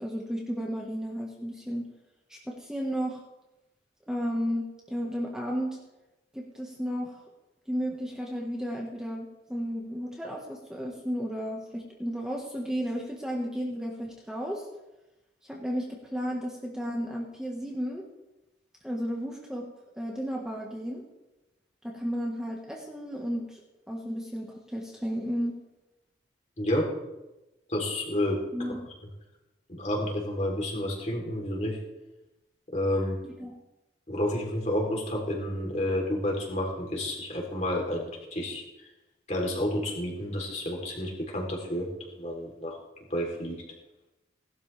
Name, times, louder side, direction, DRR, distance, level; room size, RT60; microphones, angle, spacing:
voice 1, 0.0-1.8 2.3-3.2 4.1-5.8 6.3-7.2 7.7-14.6 15.5-18.0 18.8-19.6 20.0-21.0 21.8-23.6 23.9-25.6 28.5-28.8 33.4-33.5, equal, 5° right, -2 dB, 1.6 m, -33 dB
voice 2, 27.7-28.4 29.7-31.8 32.7-33.2 34.1-38.6 39.3-42.8 43.1-43.6, left 1 dB, 40° left, -1 dB, 3.6 m, -30 dB
18.5 x 12.5 x 3.5 m, 1.0 s
head